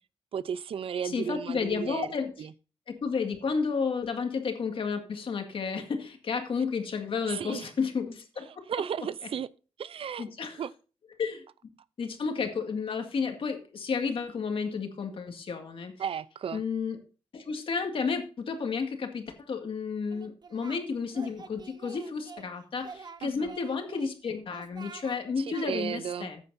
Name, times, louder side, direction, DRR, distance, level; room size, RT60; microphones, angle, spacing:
voice 1, 0.3-2.1 2.4-2.5 7.3-7.7 8.7-9.5 9.8-10.3 10.6-10.7 16.0-16.6 23.2-23.5 25.4-26.3, right 8 dB, 70° right, 0.5 m, -34 dB
voice 2, 1.0-2.3 2.9-8.6 10.2-10.6 11.2-11.4 12.0-15.9 16.5-17.0 17.3-26.4, left 5 dB, 65° left, 2.0 m, -32 dB
Singing, 20.1-20.8 21.1-22.5 22.8-24.1 24.5-25.2 25.5-25.7, right 5 dB, 45° right, 1.0 m, -47 dB
14.0 x 9.1 x 2.7 m
wide cardioid pair, 110°, 10 cm